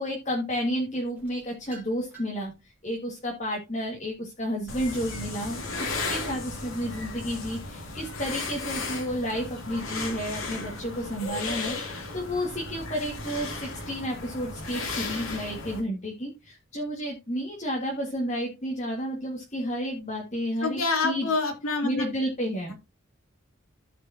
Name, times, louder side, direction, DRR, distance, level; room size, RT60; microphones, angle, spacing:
voice 1, 0.0-21.3 21.8-22.7, equal, 35° left, -1 dB, 1.9 m, -31 dB
sound 1, 1.1-2.5 3.0-5.3, right 1 dB, 10° right, 3.6 m, -48 dB
sound 2, 4.7-15.8, left 3 dB, 70° left, 2.5 m, -35 dB
voice 2, 20.6-22.1, left 3 dB, 90° left, 4 dB, 2.7 m, -27 dB
14.5 x 5.2 x 2.8 m, 0.25 s
head